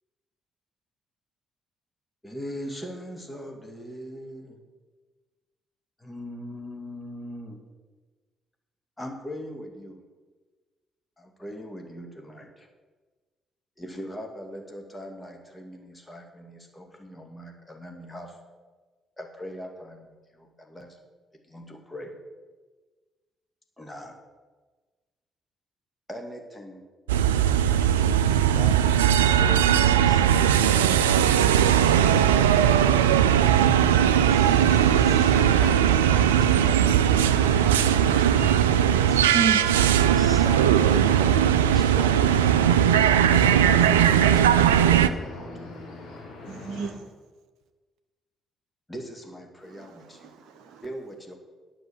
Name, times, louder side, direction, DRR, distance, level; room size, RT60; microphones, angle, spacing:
voice 1, 2.2-4.6 6.0-7.6 9.0-10.0 11.2-12.7 13.8-18.4 19.2-21.0 21.5-22.1 23.8-24.1 26.1-26.8 28.4-28.8 29.3-31.2 35.6-38.3 40.0-42.5 43.4-45.5 48.9-50.4 50.8-51.4, equal, 15° left, 2 dB, 2.2 m, -40 dB
sound 1, 27.1-45.1, right 10 dB, 80° right, 0.3 m, -19 dB
sound 2, 27.2-46.9, left 3 dB, 60° left, 3.4 m, -39 dB
voice 2, 27.9-28.4 34.3-35.5 39.1-39.3, right 4 dB, 35° right, 9 dB, 0.9 m, -49 dB
voice 3, 39.3-39.6 46.5-47.0 49.7-50.8, right 7 dB, 65° right, 6 dB, 0.8 m, -31 dB
10.0 x 6.4 x 7.1 m, 1.3 s
figure-of-eight pair, 45°, 0 cm